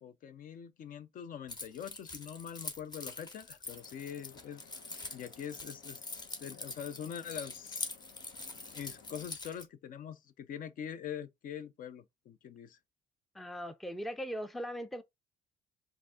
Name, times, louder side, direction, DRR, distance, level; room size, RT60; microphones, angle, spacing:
voice 1, 0.0-4.6 5.1-6.0 6.4-7.9 8.7-12.8, left 8 dB, 55° left, 0.5 m, -44 dB
Keys jangling, 1.5-9.6, left 3 dB, 25° left, 1.0 m, -44 dB
sound 1, 3.6-9.3, left 6 dB, 85° left, 1.1 m, -59 dB
voice 2, 13.3-15.0, equal, ahead, 0.4 m, -39 dB
5.0 x 2.5 x 3.6 m
cardioid pair, 110°, 17 cm